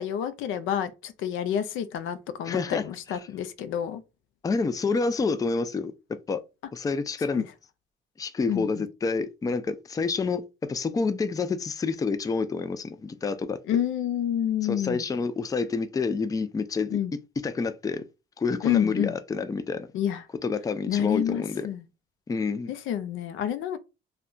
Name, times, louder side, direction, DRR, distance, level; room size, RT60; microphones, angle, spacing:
voice 1, 0.0-4.0 7.3-7.5 8.5-8.8 13.7-15.0 16.9-17.1 18.6-19.2 19.9-20.2 20.9-21.8 22.7-23.8, left 9 dB, 85° left, 0.5 m, -29 dB
voice 2, 2.5-2.8 4.4-5.9 6.3-6.4 6.7-7.5 8.2-13.6 14.7-17.0 17.4-18.0 18.4-19.9 20.4-21.7 22.3-22.7, left 4 dB, 20° left, 0.3 m, -28 dB
2.2 x 2.2 x 3.7 m
cardioid pair, 90°, 20 cm